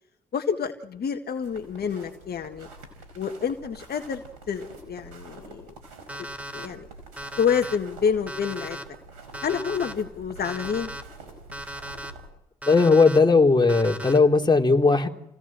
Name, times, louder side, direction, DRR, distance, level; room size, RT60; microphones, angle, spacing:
voice 1, 0.3-2.7 3.1-5.7 6.2-6.3 6.5-6.9 7.4-8.8 9.4-10.9, left 7 dB, 55° left, 5 dB, 1.7 m, -28 dB
sound 1, 1.4-12.3, right 2 dB, 90° right, 5.0 m, -46 dB
Alarm, 6.1-6.7 7.2-7.8 8.3-8.8 9.3-9.9 10.4-11.0 11.5-12.1 12.6-13.2 13.7-14.2, equal, 5° right, 3.6 m, -37 dB
voice 2, 12.7-15.1, left 4 dB, 25° left, 2 dB, 3.4 m, -18 dB
29.5 x 17.5 x 7.5 m, 0.90 s
hypercardioid pair, 45°, 19 cm